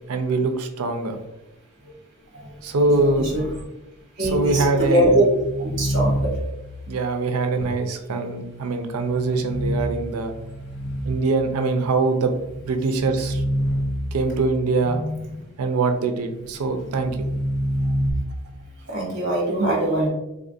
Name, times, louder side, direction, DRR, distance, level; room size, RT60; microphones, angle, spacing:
voice 1, 0.1-1.2 2.6-3.4 4.2-5.3 6.9-10.3 11.0-12.3 12.6-13.4 14.1-15.0 15.6-17.2, right 3 dB, 80° right, 5 dB, 0.4 m, -23 dB
voice 2, 2.9-3.4 4.2-5.2 5.6-6.3 15.0-15.2 18.9-20.1, right 1 dB, 50° right, -3 dB, 1.0 m, -22 dB
sound 1, 4.5-6.8 8.8-11.4 12.1-14.6 16.6-18.1, equal, 50° left, 0.4 m, -28 dB
3.6 x 2.4 x 2.5 m, 0.91 s
head